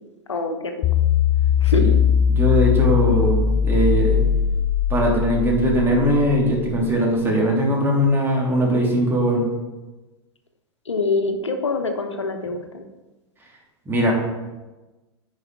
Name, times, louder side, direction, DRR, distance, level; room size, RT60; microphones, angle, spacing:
voice 1, 0.3-0.7 1.6-2.0 10.9-12.8, left 3 dB, 85° left, 6 dB, 1.0 m, -25 dB
sound 1, 0.8-7.1, left 8 dB, 40° left, 0.4 m, -20 dB
voice 2, 2.3-4.2 4.9-9.4 13.9-14.1, equal, 15° right, -3 dB, 2.7 m, -20 dB
9.7 x 4.9 x 4.6 m, 1.1 s
hypercardioid pair, 95°, 15 cm